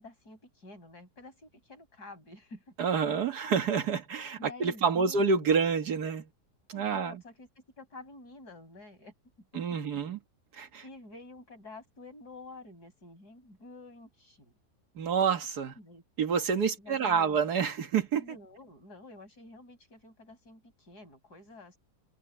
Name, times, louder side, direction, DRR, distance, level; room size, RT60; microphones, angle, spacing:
voice 1, 0.0-2.7 4.4-5.7 6.7-7.5 7.8-9.1 9.5-10.0 10.8-14.5 15.8-16.0 16.8-17.4 18.1-21.8, left 2 dB, 80° left, 7.2 m, -49 dB
voice 2, 2.8-6.3 6.7-7.2 9.5-10.2 10.6-10.8 15.0-15.7 16.2-18.3, right 6 dB, 80° right, 2.0 m, -28 dB
omnidirectional pair, 1.7 m